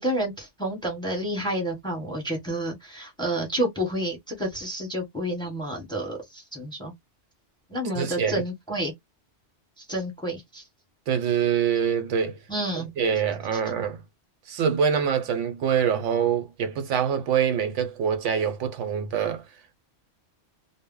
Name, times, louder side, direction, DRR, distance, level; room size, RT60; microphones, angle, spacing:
voice 1, 0.0-6.9 7.7-8.9 9.8-10.6 12.5-12.9, right 1 dB, 5° left, 0.8 m, -29 dB
voice 2, 8.0-8.4 11.1-12.4 13.0-14.0 14.5-19.4, right 7 dB, 80° right, 0.9 m, -25 dB
2.0 x 2.0 x 3.6 m
omnidirectional pair, 1.2 m